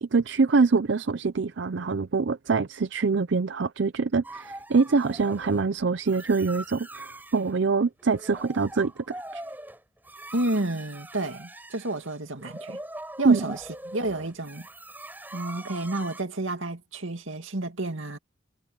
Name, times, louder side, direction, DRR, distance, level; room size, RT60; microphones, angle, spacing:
voice 1, 0.0-7.1 7.3-9.4 13.2-13.4, right 4 dB, 70° right, 0.5 m, -24 dB
sound 1, 4.2-5.7 6.1-7.5 8.0-16.2, right 1 dB, 10° right, 6.6 m, -42 dB
voice 2, 10.3-12.8 13.2-14.7 15.3-18.2, right 2 dB, 90° right, 2.4 m, -31 dB
head